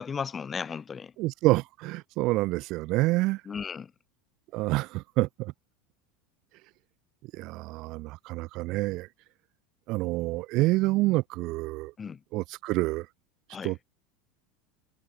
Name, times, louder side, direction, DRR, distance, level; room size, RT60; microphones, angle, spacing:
voice 1, 0.0-1.1 3.4-3.9 12.0-12.2 13.5-13.7, left 6 dB, 15° left, 6.6 m, -35 dB
voice 2, 1.2-3.4 4.5-5.5 7.3-9.1 9.9-11.9 12.3-13.1 13.6-13.8, right 20 dB, 40° right, 0.7 m, -27 dB
supercardioid pair, 170°, 0 cm